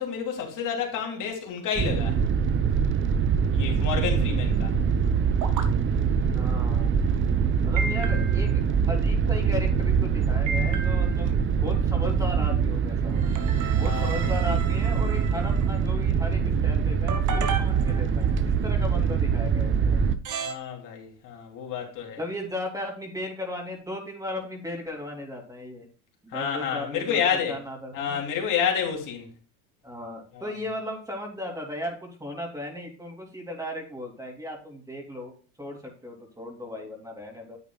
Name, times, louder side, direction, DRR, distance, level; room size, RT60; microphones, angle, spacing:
voice 1, 0.0-2.2 3.5-4.8 13.7-14.3 20.4-22.2 26.3-27.6 27.9-29.3 30.3-30.4, left 7 dB, 50° left, 3.2 m, -29 dB
sound 1, 1.8-20.2, right 6 dB, 30° right, 0.8 m, -24 dB
sound 2, 5.4-5.6 7.8-8.6 10.5-11.3 13.1-15.8 17.1-18.4 19.7-19.8 20.2-20.6, right 5 dB, 50° right, 1.7 m, -34 dB
voice 2, 6.2-6.9 7.6-8.6 8.9-13.2 13.8-20.0 22.2-25.9 26.2-28.2 29.8-37.6, left 1 dB, 10° right, 3.2 m, -36 dB
9.8 x 8.3 x 2.4 m
hypercardioid pair, 85°, 39 cm